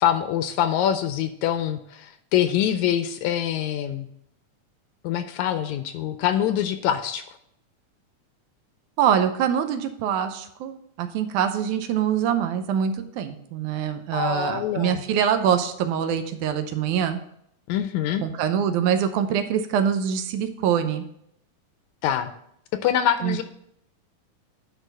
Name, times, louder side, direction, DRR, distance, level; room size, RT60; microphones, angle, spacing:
voice 1, 0.0-4.1 5.0-7.4 14.1-15.0 17.7-18.2 22.0-22.3 22.7-23.4, left 10 dB, 80° left, 9 dB, 1.8 m, -24 dB
voice 2, 9.0-17.2 18.2-21.1 23.2-23.4, right 8 dB, 80° right, 8 dB, 2.1 m, -24 dB
10.0 x 4.0 x 5.4 m, 0.71 s
omnidirectional pair, 3.6 m